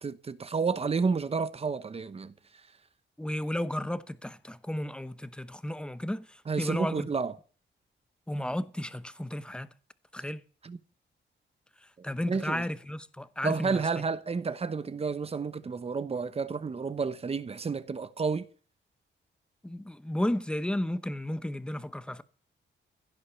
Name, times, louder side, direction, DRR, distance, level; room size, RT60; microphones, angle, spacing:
voice 1, 0.0-2.3 6.5-7.3 10.6-10.8 12.3-12.6 13.4-18.5, right 5 dB, 30° right, 0.9 m, -30 dB
voice 2, 3.2-7.1 8.3-9.7 10.1-10.4 12.0-13.8 19.6-22.2, left 1 dB, 5° left, 0.8 m, -33 dB
16.0 x 10.0 x 6.9 m
wide cardioid pair, 155°, 20 cm